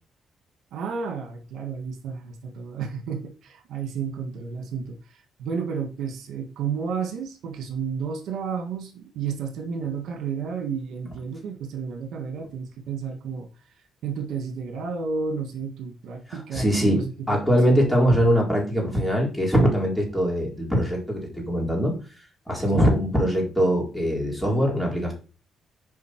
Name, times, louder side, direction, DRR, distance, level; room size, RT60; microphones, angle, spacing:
voice 1, 0.7-17.6 22.7-22.8, right 6 dB, 75° right, 4 dB, 1.5 m, -32 dB
voice 2, 16.3-17.0 17.3-25.1, equal, 5° left, -2 dB, 3.9 m, -22 dB
8.3 x 5.1 x 4.4 m, 0.34 s
cardioid pair, 90°, 0 cm